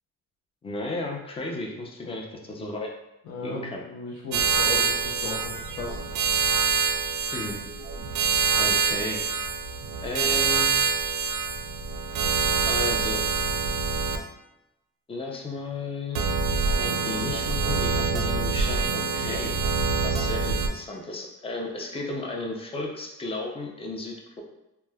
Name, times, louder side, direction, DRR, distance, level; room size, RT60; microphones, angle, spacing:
voice 1, 0.6-2.9 3.4-3.8 7.3-7.6 8.6-9.2 10.0-10.7 12.6-13.2 15.1-16.2 16.5-19.6 20.0-24.4, left 2 dB, 20° left, 0 dB, 0.5 m, -34 dB
voice 2, 3.2-6.0, left 3 dB, 65° left, -6 dB, 0.6 m, -36 dB
sound 1, 4.3-14.2 16.1-20.7, right 5 dB, 65° right, 0.4 m, -25 dB
3.1 x 2.1 x 2.2 m, 0.94 s
cardioid pair, 100°, 32 cm